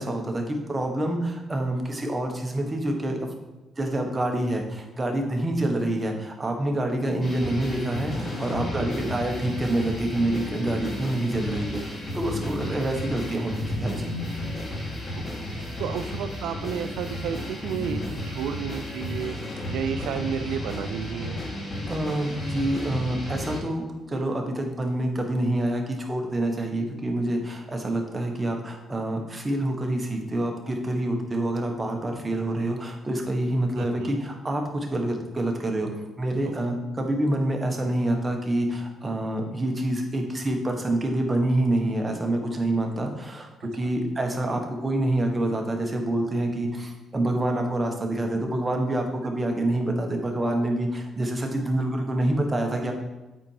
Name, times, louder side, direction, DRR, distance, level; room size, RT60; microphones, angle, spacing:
voice 1, 0.0-3.3 3.8-14.1 21.9-35.9 36.2-52.9, right 1 dB, 20° right, 2 dB, 1.4 m, -27 dB
sound 1, 7.2-23.6, left 1 dB, 35° left, 2.9 m, -33 dB
voice 2, 8.8-9.1 15.6-19.4 19.7-21.4 33.8-34.1 43.8-43.9 49.2-49.3, right 8 dB, 90° right, 9 dB, 0.3 m, -32 dB
8.5 x 4.3 x 4.9 m, 1.1 s
cardioid pair, 90°, 0 cm